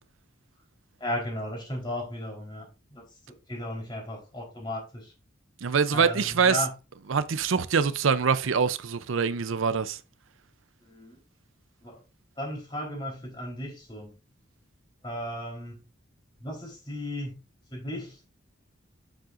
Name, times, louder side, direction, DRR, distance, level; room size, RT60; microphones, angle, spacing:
voice 1, 1.0-3.0 3.5-5.1 5.9-6.7 10.8-11.2 11.8-12.0 12.4-14.1 15.0-15.8 16.4-17.3 17.7-18.2, left 1 dB, 25° left, 3.6 m, -35 dB
voice 2, 5.6-6.6 7.1-10.0, right 6 dB, 80° right, 0.6 m, -24 dB
8.9 x 7.6 x 2.5 m
head